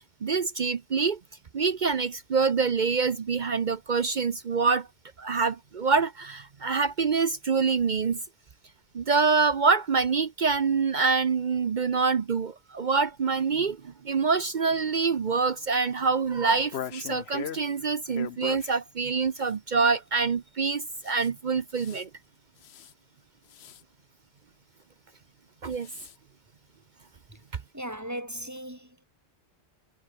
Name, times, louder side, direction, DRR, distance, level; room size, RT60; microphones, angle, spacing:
voice 1, 0.2-1.2 1.5-4.9 5.2-8.2 8.9-22.1 25.6-25.9, right 5 dB, 50° right, 0.9 m, -26 dB
sound 1, 16.5-17.6 18.1-18.7 19.4-19.5 21.0-21.3 21.7-22.0 22.6-22.9 23.5-23.8 25.6-26.2, left 9 dB, 75° left, 1.1 m, -39 dB
voice 2, 27.7-29.0, equal, 15° right, 5.7 m, -37 dB
omnidirectional pair, 1.1 m